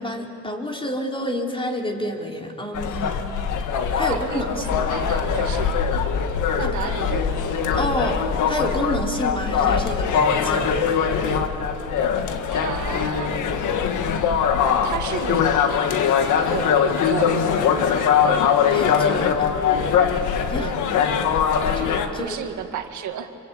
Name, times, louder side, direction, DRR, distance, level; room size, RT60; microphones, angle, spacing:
voice 1, 0.0-3.4 4.0-4.7 6.6-6.9 7.7-8.2 8.5-10.7 18.7-19.5 20.3-20.7 21.6-22.4, left 1 dB, 15° left, 1 dB, 3.7 m, -29 dB
sound 1, 2.7-22.1, left 7 dB, 80° left, 1.7 m, -22 dB
voice 2, 4.1-6.0 6.5-7.8 12.5-13.4 14.8-15.5 16.5-17.9 20.6-20.8 22.2-23.3, right 8 dB, 75° right, 6 dB, 2.0 m, -32 dB
27.0 x 25.0 x 8.6 m, 2.8 s
cardioid pair, 90°, 30 cm